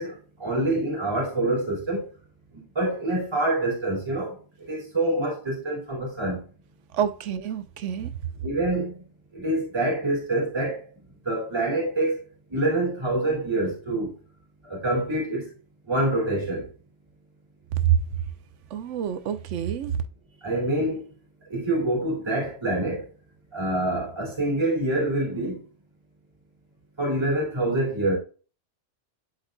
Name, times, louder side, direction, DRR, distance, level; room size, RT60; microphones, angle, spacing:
voice 1, 0.0-2.1 2.5-6.5 8.4-9.0 9.3-10.8 11.2-12.2 12.5-14.1 14.6-15.5 15.9-16.7 20.4-21.1 21.5-23.1 23.5-25.6 27.0-28.2, right 1 dB, 20° right, 2.7 m, -26 dB
voice 2, 6.9-8.2 17.7-18.0 18.7-19.9, right 9 dB, 80° right, 1.0 m, -26 dB
11.5 x 3.9 x 2.3 m
omnidirectional pair, 1.3 m